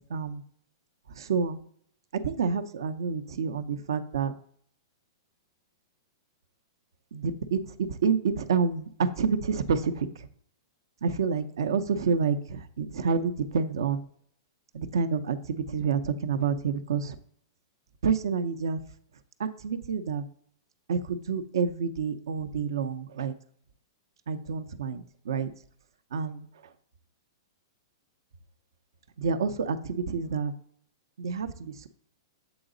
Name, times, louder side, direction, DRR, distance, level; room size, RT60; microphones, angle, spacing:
voice 1, 0.1-0.4 1.1-1.6 2.2-4.3 7.1-7.6 7.9-10.1 11.0-14.1 14.7-17.2 18.0-18.8 19.4-20.3 20.9-23.3 24.3-25.5 26.1-26.5 29.2-30.5 31.2-31.9, right 5 dB, 80° right, 11 dB, 0.6 m, -28 dB
7.8 x 4.0 x 3.8 m, 0.62 s
hypercardioid pair, 125°, 2 cm